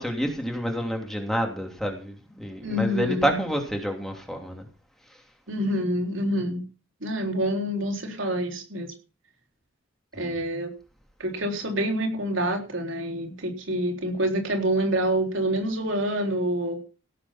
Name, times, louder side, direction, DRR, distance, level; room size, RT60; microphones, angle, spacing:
voice 1, 0.0-4.7 5.1-5.2 10.2-10.4, equal, ahead, 2.9 m, -29 dB
voice 2, 2.6-3.4 5.5-6.6 7.0-8.9 10.1-10.7 11.2-16.8, equal, 75° right, 3.8 m, -27 dB
17.5 x 7.3 x 5.8 m
head